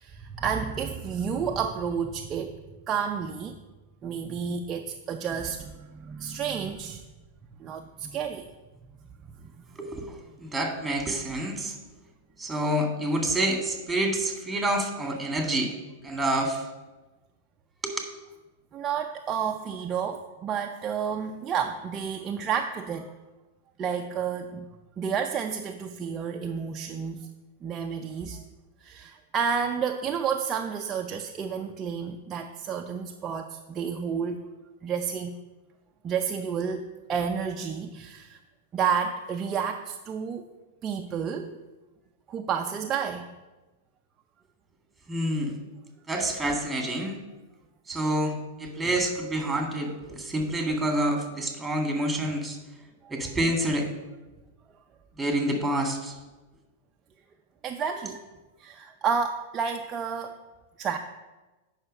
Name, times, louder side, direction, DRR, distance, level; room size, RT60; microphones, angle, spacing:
voice 1, 0.0-2.6 2.9-3.6 4.0-7.0 7.6-8.5 18.7-23.1 23.8-24.7 25.0-27.3 27.6-28.4 28.8-34.4 34.8-35.4 36.0-38.4 38.7-40.4 40.8-41.6 42.3-43.3 48.8-48.9 53.0-53.1 57.6-58.2 58.6-60.4 60.8-61.0, right 7 dB, 30° right, 3 dB, 0.6 m, -30 dB
voice 2, 9.8-11.8 12.4-15.7 16.0-16.7 17.8-18.1 45.1-45.6 46.1-47.2 47.9-52.6 53.1-53.9 55.2-56.2, right 1 dB, 10° right, 2 dB, 1.9 m, -28 dB
8.8 x 5.8 x 5.4 m, 1.1 s
hypercardioid pair, 105°, 0 cm